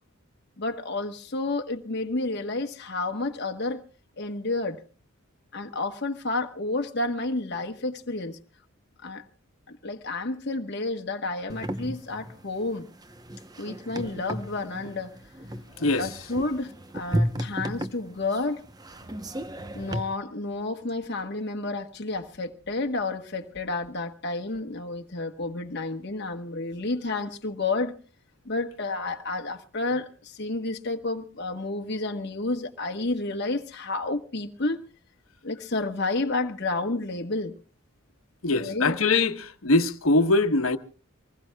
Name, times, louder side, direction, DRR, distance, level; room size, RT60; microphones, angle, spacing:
voice 1, 0.6-3.8 4.2-4.8 5.5-8.4 9.0-9.2 9.7-12.9 13.6-15.2 16.0-18.6 19.7-27.9 28.4-34.8 35.4-37.5 38.6-39.0, left 2 dB, 55° left, 1.2 m, -30 dB
sound 1, 11.5-20.0, equal, 20° right, 0.7 m, -34 dB
voice 2, 15.8-16.1 38.4-40.8, left 2 dB, 80° left, 1.1 m, -22 dB
25.0 x 20.0 x 2.3 m
head